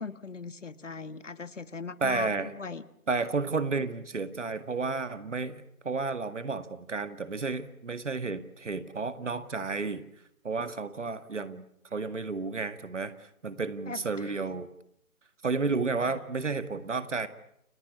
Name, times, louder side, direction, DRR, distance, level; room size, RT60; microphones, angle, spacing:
voice 1, 0.0-2.3 2.6-2.8 13.9-14.0 16.0-16.1, left 4 dB, 55° left, 14 dB, 1.7 m, -39 dB
voice 2, 2.0-2.5 3.1-10.0 10.4-11.6 11.9-13.1 13.4-14.7 15.4-17.3, right 4 dB, 55° right, 12 dB, 2.1 m, -32 dB
29.5 x 17.5 x 10.0 m, 0.75 s
figure-of-eight pair, 150°, 43 cm